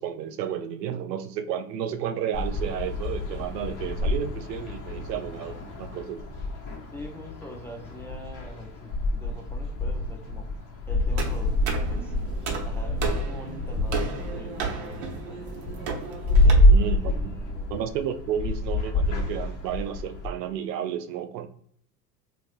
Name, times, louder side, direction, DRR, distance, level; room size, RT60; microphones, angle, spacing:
voice 1, 0.0-6.2 16.7-17.3 17.7-21.5, right 9 dB, 80° right, 9 dB, 0.5 m, -32 dB
sound 1, 2.3-20.3, left 1 dB, 40° left, 1.1 m, -27 dB
voice 2, 6.9-10.5 10.9-12.1 12.6-15.6 16.4-17.8, equal, 5° left, 0 dB, 0.5 m, -44 dB
sound 2, 11.2-16.5, right 5 dB, 50° right, 0.9 m, -33 dB
2.9 x 2.9 x 2.5 m, 0.63 s
hypercardioid pair, 80°, 49 cm